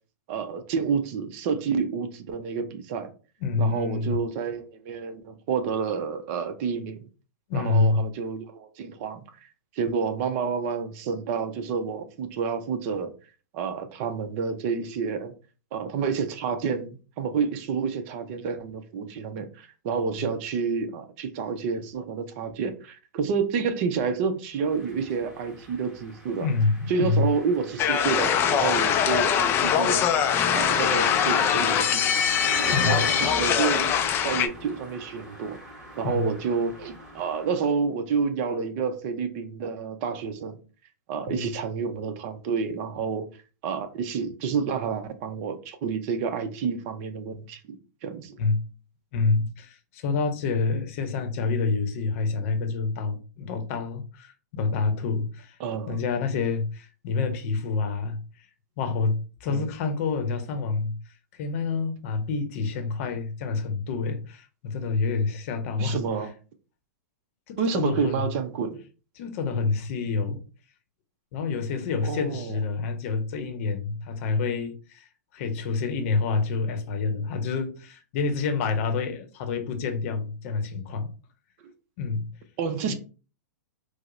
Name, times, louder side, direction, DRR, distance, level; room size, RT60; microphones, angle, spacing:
voice 1, 0.3-3.1 3.6-7.0 7.5-9.2 9.7-13.1 13.5-15.3 15.7-26.5 26.9-30.0 30.5-32.1 32.7-34.0 34.2-35.6 35.9-40.6 41.1-43.3 43.6-47.8 48.0-48.4 55.6-56.0 59.5-59.7 65.8-66.3 67.6-68.8 72.0-72.6 82.6-82.9, right 5 dB, 45° right, 0.6 m, -29 dB
voice 2, 3.4-4.1 7.5-8.0 26.4-27.3 32.7-33.0 36.0-36.3 41.3-41.4 48.4-48.6 49.1-55.6 55.9-58.2 58.8-60.9 61.3-66.0 67.5-68.2 69.2-70.4 71.3-75.1 75.3-81.1 82.0-82.3 82.9-83.0, left 4 dB, 50° left, 0.7 m, -27 dB
sound 1, 24.6-37.6, equal, 5° right, 1.2 m, -39 dB
sound 2, 27.8-34.5, left 8 dB, 25° left, 0.3 m, -23 dB
4.7 x 2.1 x 2.5 m
hypercardioid pair, 135°, 9 cm